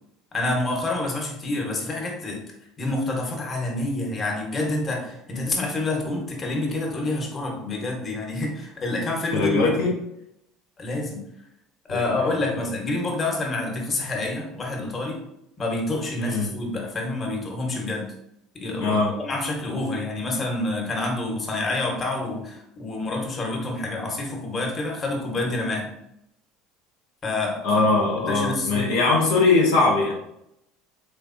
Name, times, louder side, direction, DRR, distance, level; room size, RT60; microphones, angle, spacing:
voice 1, 0.3-2.4 2.8-9.9 10.8-11.2 11.9-15.2 15.6-18.1 18.5-25.9 27.2-28.9, left 2 dB, 35° left, 1 dB, 1.1 m, -28 dB
voice 2, 9.3-9.9 11.9-12.0 16.2-16.5 18.8-19.1 27.6-30.1, left 3 dB, 80° left, -2 dB, 0.7 m, -21 dB
3.4 x 3.2 x 2.6 m, 0.79 s
hypercardioid pair, 80°, 0 cm